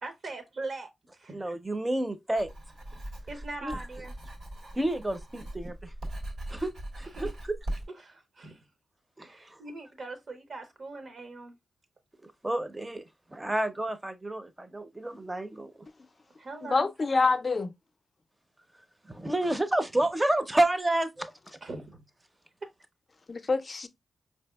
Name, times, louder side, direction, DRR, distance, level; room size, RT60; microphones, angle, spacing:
voice 1, 0.0-1.4 3.3-4.1 7.1-7.3 8.0-8.6 9.2-11.6 16.4-16.9 21.6-22.0 22.6-22.7, right 3 dB, 65° right, 0.8 m, -41 dB
voice 2, 1.3-2.5 3.6-3.8 4.7-5.9 6.5-7.3 9.2-9.6 12.2-15.7 19.0-21.3, right 1 dB, 20° right, 0.5 m, -30 dB
Writing, 2.4-7.9, right 1 dB, 85° right, 1.5 m, -40 dB
voice 3, 16.6-17.7 23.3-23.9, left 4 dB, 45° left, 0.4 m, -26 dB
4.5 x 2.7 x 2.2 m
cardioid pair, 60°, 0 cm